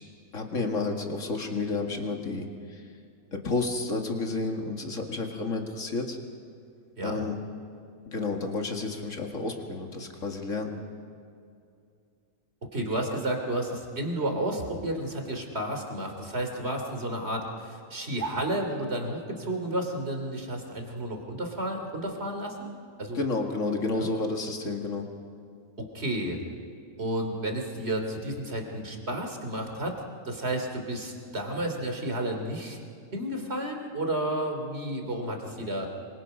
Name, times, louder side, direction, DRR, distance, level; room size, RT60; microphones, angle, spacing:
voice 1, 0.3-2.8 3.3-6.2 7.0-7.4 8.1-10.7 23.1-25.1, left 3 dB, 55° left, 2 dB, 2.4 m, -31 dB
voice 2, 12.7-22.7 23.0-23.2 23.9-24.1 25.8-26.4 27.0-30.0 30.2-32.8 33.1-35.9, right 1 dB, 45° right, 3 dB, 3.2 m, -31 dB
26.5 x 24.5 x 5.4 m, 2.4 s
omnidirectional pair, 1.6 m